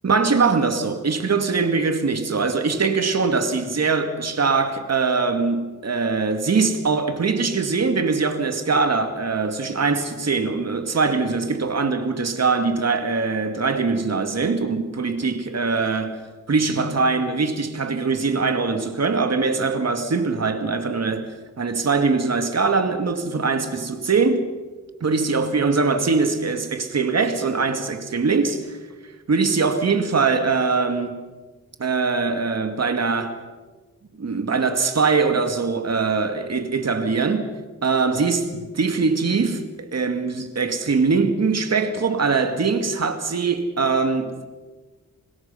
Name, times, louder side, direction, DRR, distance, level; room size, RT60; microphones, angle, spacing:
voice 1, 0.0-16.2 16.5-21.3 21.6-24.5 25.0-28.8 29.3-31.2 31.8-33.4 34.2-37.5 37.8-44.4, right 4 dB, 50° right, 2.2 m, -22 dB
25.0 x 20.5 x 5.7 m
wide cardioid pair, 95°, 34 cm